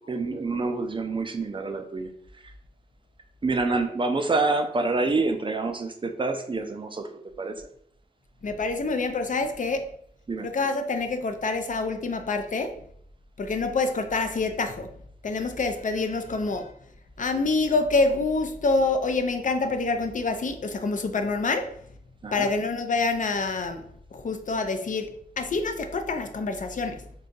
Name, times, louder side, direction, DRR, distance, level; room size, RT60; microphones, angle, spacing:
voice 1, 0.1-2.1 2.4-2.5 3.4-7.6 10.3-10.5 22.2-22.5, right 3 dB, 30° right, 0.4 m, -27 dB
voice 2, 8.4-9.9 10.4-12.8 13.4-14.9 15.2-16.7 17.2-21.7 22.3-23.8 24.1-27.0, left 3 dB, 55° left, 0.4 m, -26 dB
2.6 x 2.3 x 3.8 m
wide cardioid pair, 85°, 16 cm